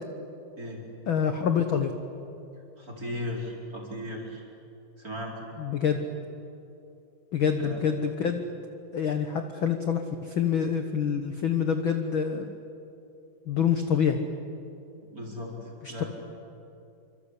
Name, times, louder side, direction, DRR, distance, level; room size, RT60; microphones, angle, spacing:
voice 1, 1.1-1.9 5.6-6.0 7.3-8.4 8.9-12.5 13.5-14.2 15.8-16.0, left 7 dB, 65° left, 6 dB, 1.3 m, -26 dB
voice 2, 2.8-4.4 5.0-5.3 7.6-7.8 15.1-15.5 15.9-16.1, left 1 dB, 25° right, -1 dB, 4.9 m, -36 dB
28.0 x 25.0 x 8.3 m, 2.7 s
omnidirectional pair, 4.0 m